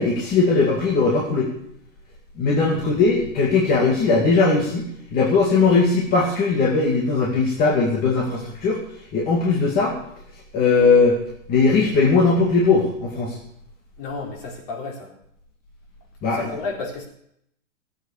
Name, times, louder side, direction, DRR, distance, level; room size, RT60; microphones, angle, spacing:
voice 1, 0.0-1.5 2.4-8.8 9.1-9.9 10.5-11.2 11.5-13.4 16.2-16.6, left 4 dB, 25° left, -2 dB, 2.3 m, -19 dB
voice 2, 14.0-15.1 16.3-17.0, left 3 dB, 45° left, 0 dB, 4.1 m, -32 dB
13.5 x 8.5 x 6.7 m, 0.71 s
hypercardioid pair, 145°, 39 cm